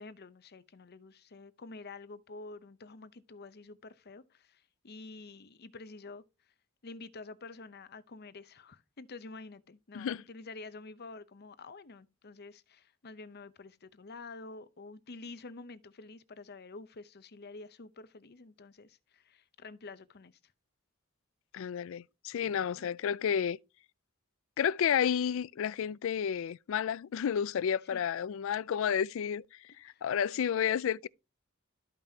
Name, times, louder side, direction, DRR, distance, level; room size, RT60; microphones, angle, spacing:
voice 1, 0.0-6.3 6.8-20.4 22.4-22.9 27.9-28.0 29.7-30.0, left 3 dB, 50° left, 0.8 m, -49 dB
voice 2, 21.5-23.6 24.6-29.4 29.8-31.1, left 8 dB, 70° left, 0.4 m, -31 dB
13.5 x 5.3 x 2.8 m
head